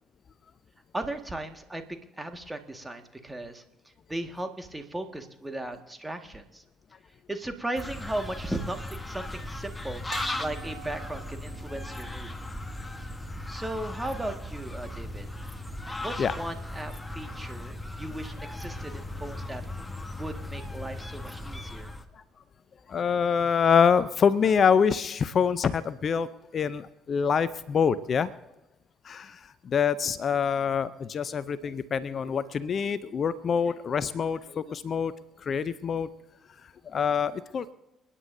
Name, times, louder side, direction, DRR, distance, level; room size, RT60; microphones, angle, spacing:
voice 1, 0.9-3.6 4.1-6.6 7.3-12.3 13.5-15.3 16.0-19.6 20.2-21.9, right 1 dB, 10° right, 6 dB, 1.8 m, -36 dB
sound 1, 7.8-22.1, left 1 dB, 15° left, 1.3 m, -37 dB
sound 2, 10.1-16.5 16.8-16.9, right 5 dB, 70° right, 3.3 m, -49 dB
voice 2, 22.9-26.3 26.5-28.3 29.0-35.1 35.4-36.1 36.8-37.7, left 6 dB, 45° left, 16 dB, 0.6 m, -25 dB
29.5 x 10.0 x 2.7 m, 0.99 s
hypercardioid pair, 50°, 0 cm